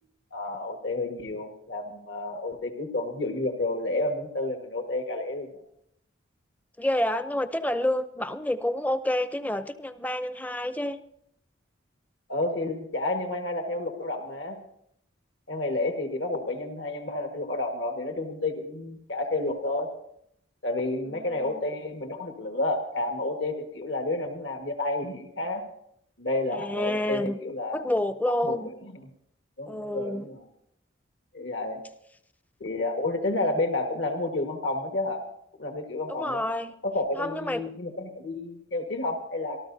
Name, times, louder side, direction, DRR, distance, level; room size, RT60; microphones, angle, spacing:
voice 1, 0.3-5.5 12.3-14.6 15.5-19.9 20.6-25.6 26.2-27.8 28.4-28.6 29.6-30.4 31.3-31.8 32.6-35.2 35.6-36.4 36.8-39.6, left 2 dB, 70° left, 4 dB, 1.6 m, -30 dB
voice 2, 6.8-11.0 21.1-21.6 26.5-27.4 27.7-28.7 29.7-30.3 36.1-36.7 37.2-37.7, left 1 dB, 10° left, 11 dB, 0.5 m, -29 dB
26.0 x 13.5 x 2.7 m, 0.73 s
head